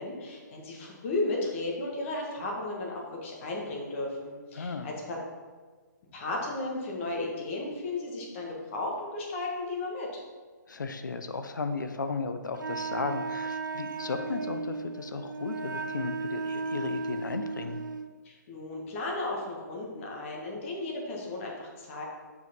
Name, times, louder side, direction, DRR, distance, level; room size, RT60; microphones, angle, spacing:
voice 1, 0.0-5.2 6.1-10.2 18.2-22.0, left 2 dB, 40° left, -1 dB, 1.8 m, -34 dB
voice 2, 4.5-4.9 10.7-17.8, left 4 dB, 80° left, 8 dB, 0.7 m, -35 dB
Wind instrument woodwind instrument, 12.6-18.1, right 4 dB, 80° right, 0.6 m, -35 dB
6.6 x 4.9 x 5.3 m, 1.4 s
figure-of-eight pair, 135°, 10 cm